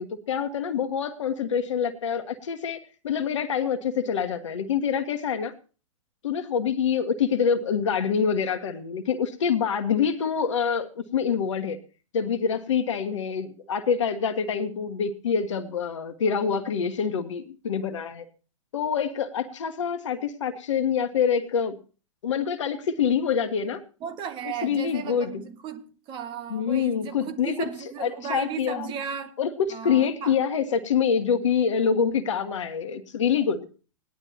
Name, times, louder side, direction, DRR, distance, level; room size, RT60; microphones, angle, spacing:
voice 1, 0.0-2.8 3.0-5.5 6.2-11.8 12.1-18.2 18.7-21.8 22.2-23.8 24.6-25.4 26.5-27.7 28.0-28.9 29.4-33.7, left 7 dB, 65° left, 1.3 m, -26 dB
voice 2, 24.0-29.4 29.7-30.4, right 7 dB, 30° right, 1.5 m, -36 dB
19.0 x 11.0 x 2.8 m
hypercardioid pair, 115°, 17 cm